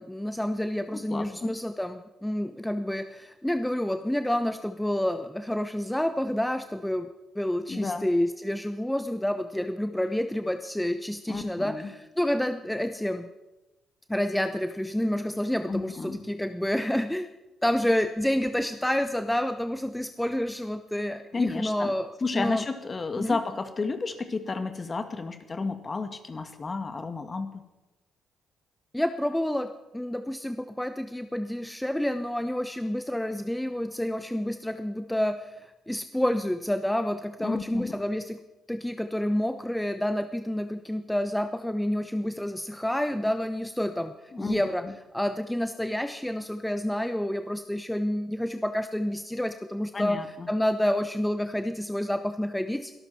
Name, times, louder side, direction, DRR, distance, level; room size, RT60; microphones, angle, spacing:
voice 1, 0.0-7.1 7.3-13.3 14.1-17.3 17.6-22.6 23.2-23.4 28.9-29.7 29.9-38.4 38.7-44.8 45.1-50.2 50.5-52.9, left 1 dB, 5° left, 9 dB, 1.0 m, -29 dB
voice 2, 0.9-1.5 7.7-8.1 11.3-11.9 15.7-16.2 21.3-21.9 22.2-27.6 37.4-38.0 44.3-44.9 49.9-50.5, left 4 dB, 35° left, 8 dB, 2.1 m, -32 dB
22.0 x 13.5 x 4.5 m, 1.0 s
hypercardioid pair, 45°, 0 cm